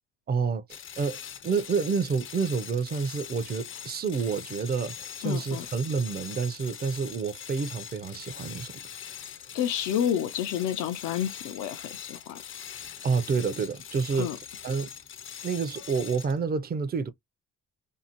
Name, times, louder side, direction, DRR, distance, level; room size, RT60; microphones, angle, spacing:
voice 1, 0.3-0.6 1.0-8.7 13.0-14.3 14.6-14.9 15.4-17.1, right 5 dB, 30° right, 0.5 m, -29 dB
sound 1, 0.7-16.4, left 8 dB, 45° left, 0.5 m, -42 dB
voice 2, 5.2-5.7 9.5-12.4 14.2-14.4, left 10 dB, 90° left, 0.6 m, -29 dB
2.6 x 2.0 x 2.8 m
cardioid pair, 90°, 30 cm